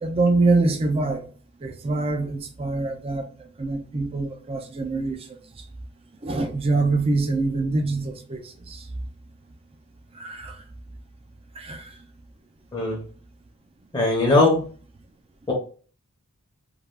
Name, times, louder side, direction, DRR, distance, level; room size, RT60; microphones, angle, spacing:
voice 1, 0.0-1.3 1.6-5.4 6.2-8.9 10.1-10.6 11.6-11.9, right 3 dB, 25° right, 0.4 m, -25 dB
voice 2, 13.9-14.6 15.5-15.6, left 2 dB, 20° left, 0.7 m, -19 dB
3.2 x 2.3 x 2.3 m
head